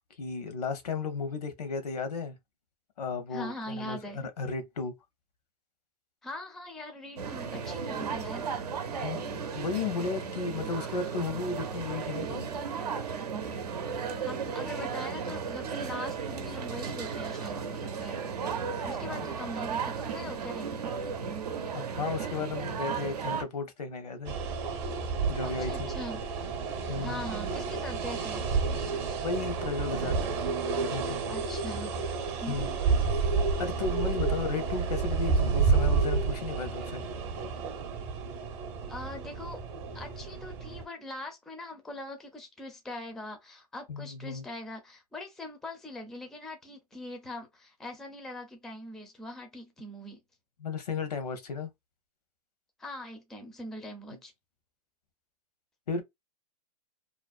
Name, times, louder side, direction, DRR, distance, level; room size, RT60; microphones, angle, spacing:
voice 1, 0.2-2.4 3.0-4.9 9.0-12.5 21.7-24.3 25.3-25.9 26.9-27.2 29.2-30.2 30.9-31.2 32.5-32.7 33.6-37.0 43.9-44.4 50.6-51.7 55.9-56.0, left 4 dB, 80° left, 0.8 m, -34 dB
voice 2, 3.3-4.2 6.2-8.5 14.2-18.2 18.8-20.9 25.4-26.2 26.7-28.4 31.3-31.9 32.4-32.8 38.9-39.6 39.9-50.2 52.8-54.3, left 1 dB, ahead, 0.4 m, -42 dB
sound 1, 7.2-23.4, right 6 dB, 85° right, 0.6 m, -35 dB
sound 2, 24.2-40.8, right 5 dB, 40° right, 0.7 m, -30 dB
2.5 x 2.0 x 2.4 m
hypercardioid pair, 135°, 20 cm